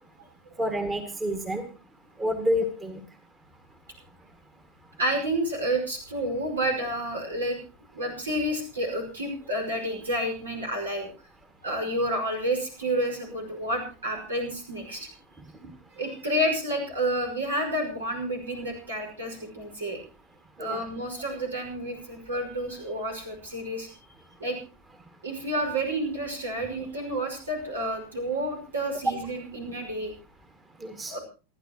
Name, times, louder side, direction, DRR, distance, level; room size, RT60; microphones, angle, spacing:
voice 1, 0.6-1.6 2.2-3.0 20.6-20.8 30.8-31.2, equal, 15° right, 8 dB, 2.0 m, -28 dB
voice 2, 5.0-7.6 7.9-11.1 11.6-15.1 16.0-20.0 20.6-23.9 24.4-24.6 25.2-30.1 31.1-31.2, right 1 dB, 70° right, 3 dB, 5.6 m, -30 dB
28.0 x 11.0 x 3.0 m, 0.34 s
figure-of-eight pair, 90°, 0 cm